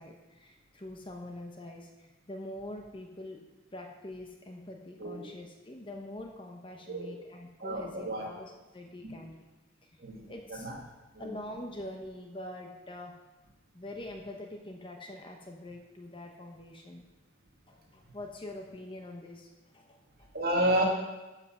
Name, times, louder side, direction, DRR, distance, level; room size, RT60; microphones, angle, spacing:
voice 1, 0.0-3.4 3.7-9.4 9.8-10.0 10.3-10.7 11.2-13.2 13.7-17.0 17.7-20.3, left 1 dB, 25° left, 3 dB, 0.9 m, -44 dB
voice 2, 5.0-5.3 6.9-7.1 7.6-8.3 9.0-9.1 10.0-10.2 10.5-10.8 11.1-11.3 20.3-20.8, right 1 dB, 45° right, -1 dB, 2.0 m, -30 dB
11.0 x 5.8 x 5.9 m, 1.1 s
head